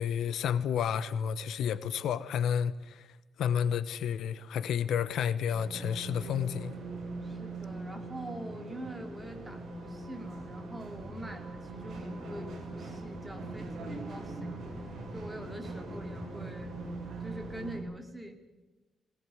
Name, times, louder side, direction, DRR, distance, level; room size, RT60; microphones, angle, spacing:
voice 1, 0.0-3.1 3.4-6.8, left 8 dB, 85° left, 1.0 m, -31 dB
sound 1, 5.5-17.8, right 2 dB, 55° right, 7.4 m, -41 dB
voice 2, 7.2-16.8 17.2-18.3, right 1 dB, 5° right, 2.8 m, -44 dB
20.5 x 18.5 x 9.3 m
wide cardioid pair, 170°, 0 cm